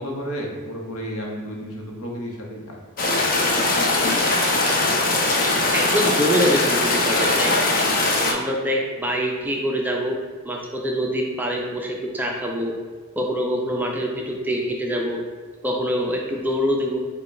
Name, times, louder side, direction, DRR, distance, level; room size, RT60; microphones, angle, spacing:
voice 1, 0.0-2.8, equal, 70° left, -1 dB, 0.9 m, -32 dB
sound 1, 3.0-8.3, left 2 dB, 40° left, 0.6 m, -20 dB
voice 2, 5.7-7.5 8.3-10.2 10.5-12.7 13.2-15.2 15.6-17.0, equal, 10° right, -1 dB, 0.4 m, -24 dB
5.3 x 2.3 x 4.3 m, 1.5 s
head